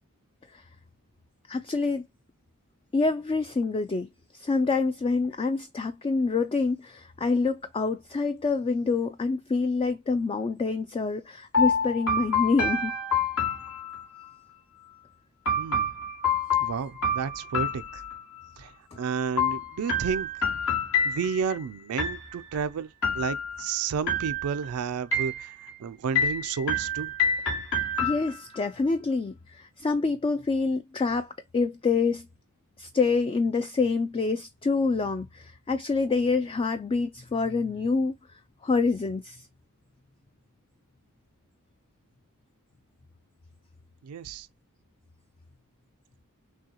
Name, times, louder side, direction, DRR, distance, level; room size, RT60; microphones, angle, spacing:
voice 1, 1.5-2.0 2.9-4.1 4.3-12.9 28.0-32.3 32.8-38.2 38.6-39.5, left 4 dB, 25° left, 0.3 m, -26 dB
sound 1, 11.5-14.3 15.5-18.5 19.4-21.6 22.0-22.6 23.0-23.7 24.1-24.7 25.1-25.8 26.2-28.6, left 3 dB, 65° left, 1.9 m, -28 dB
voice 2, 15.6-15.9 16.6-18.0 18.6-20.3 21.0-25.5 25.8-27.1 44.0-44.5, right 6 dB, 75° right, 0.4 m, -31 dB
6.2 x 2.3 x 2.8 m
head